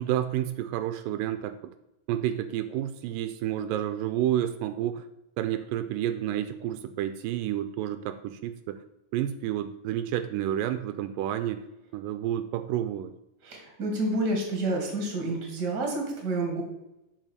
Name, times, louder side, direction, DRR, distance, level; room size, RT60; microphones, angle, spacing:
voice 1, 0.0-1.7 2.1-5.1 5.4-8.8 9.1-11.6 11.9-13.1, right 11 dB, 85° right, 10 dB, 2.2 m, -30 dB
voice 2, 13.4-16.6, right 2 dB, 35° right, 1 dB, 2.3 m, -29 dB
7.4 x 5.4 x 6.6 m, 0.89 s
omnidirectional pair, 3.9 m